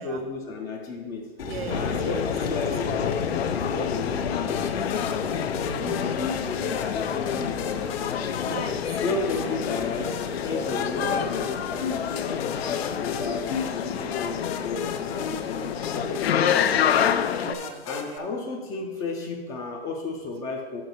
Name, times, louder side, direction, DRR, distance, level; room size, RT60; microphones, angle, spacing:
voice 1, 0.0-1.3 1.7-5.3 5.6-8.3 9.0-16.9 17.8-20.8, left 3 dB, 10° left, 2 dB, 0.3 m, -34 dB
sound 1, 1.4-16.3, left 4 dB, 70° left, 1.2 m, -39 dB
voice 2, 1.4-2.6 5.4-6.3 7.4-7.5 8.4-9.6 13.1-13.4 15.5-15.6 17.4-18.3, right 6 dB, 75° right, 9 dB, 1.0 m, -40 dB
sound 2, 1.7-17.5, left 8 dB, 85° left, 0.6 m, -28 dB
sound 3, 4.5-18.2, left 7 dB, 35° left, 0.7 m, -36 dB
6.3 x 6.0 x 5.4 m, 1.3 s
hypercardioid pair, 135°, 30 cm